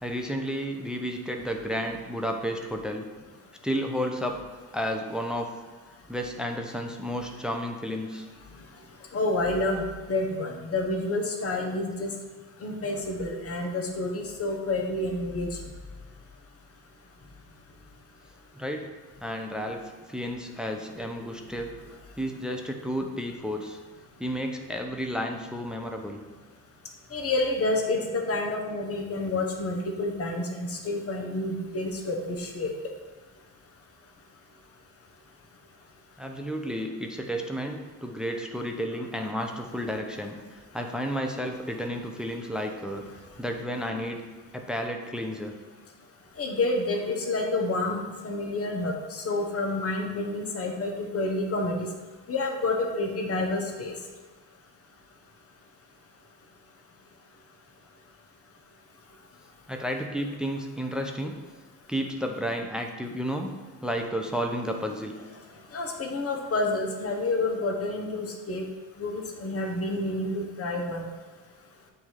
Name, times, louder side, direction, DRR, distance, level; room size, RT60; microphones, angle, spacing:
voice 1, 0.0-3.1 3.6-4.4 4.7-5.5 6.1-8.3 18.5-18.9 19.2-19.8 20.1-21.7 22.2-23.8 24.2-26.2 36.2-43.0 43.4-44.2 44.5-45.6 59.7-61.4 61.9-63.5 63.8-65.1, equal, ahead, 3 dB, 0.7 m, -32 dB
voice 2, 9.1-12.1 12.6-15.5 27.1-32.7 46.4-51.9 52.3-53.9 65.7-68.6 69.0-71.0, left 2 dB, 30° left, 1 dB, 1.1 m, -29 dB
7.3 x 2.8 x 4.7 m, 1.4 s
supercardioid pair, 60°, 43 cm